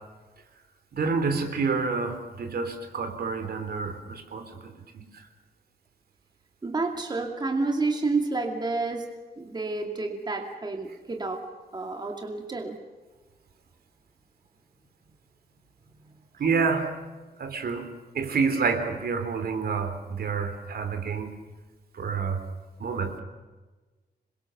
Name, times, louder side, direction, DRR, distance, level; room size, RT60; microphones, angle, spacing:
voice 1, 0.9-5.2 16.4-16.9 17.4-17.9 18.1-21.3 21.9-22.4 22.8-23.2, right 5 dB, 70° right, 6 dB, 3.4 m, -28 dB
voice 2, 6.6-9.0 9.4-11.4 11.7-12.8, right 3 dB, 25° right, 3 dB, 2.4 m, -29 dB
27.5 x 22.5 x 6.9 m, 1.2 s
wide cardioid pair, 170°, 17 cm